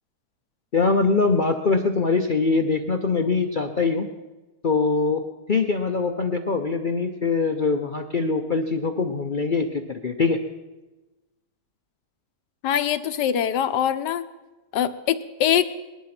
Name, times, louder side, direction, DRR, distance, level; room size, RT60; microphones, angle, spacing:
voice 1, 0.7-4.1 4.6-5.2 5.5-10.4, left 4 dB, 55° left, 5 dB, 0.5 m, -23 dB
voice 2, 12.6-14.2 14.7-15.7, left 9 dB, 85° left, 11 dB, 1.4 m, -23 dB
20.0 x 11.0 x 5.9 m, 1.1 s
omnidirectional pair, 1.8 m